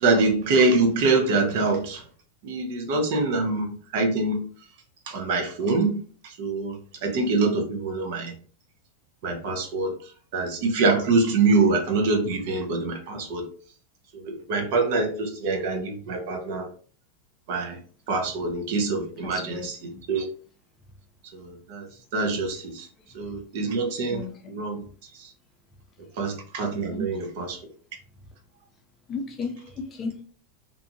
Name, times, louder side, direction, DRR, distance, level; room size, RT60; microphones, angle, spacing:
voice 1, 0.0-2.0 2.4-4.5 5.1-6.8 7.0-8.3 9.2-9.9 10.3-13.5 14.2-16.7 17.5-17.8 18.1-20.2 21.3-21.9 22.1-22.9 23.1-24.2 24.5-24.8 26.2-27.6, right 3 dB, 60° right, 4 dB, 0.7 m, -25 dB
voice 2, 19.2-19.7 23.6-23.7 24.1-24.5 26.9-27.0 29.1-30.2, left 3 dB, 25° left, 4 dB, 0.5 m, -34 dB
2.6 x 2.4 x 2.7 m, 0.43 s
supercardioid pair, 145°, 0 cm